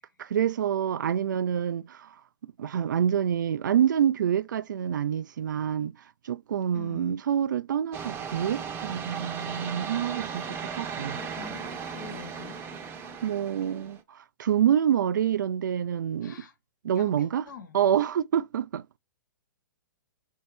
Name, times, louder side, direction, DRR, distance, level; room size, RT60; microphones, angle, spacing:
voice 1, 0.2-6.0 6.2-11.2 13.2-16.3 16.8-17.5 17.7-19.0, right 9 dB, 70° right, 0.4 m, -27 dB
voice 2, 6.7-7.2 10.5-12.6 16.2-16.5 16.9-17.8, left 5 dB, 70° left, 1.2 m, -45 dB
sound 1, 7.9-14.0, right 6 dB, 20° right, 0.7 m, -36 dB
3.9 x 2.7 x 3.3 m
hypercardioid pair, 125°, 10 cm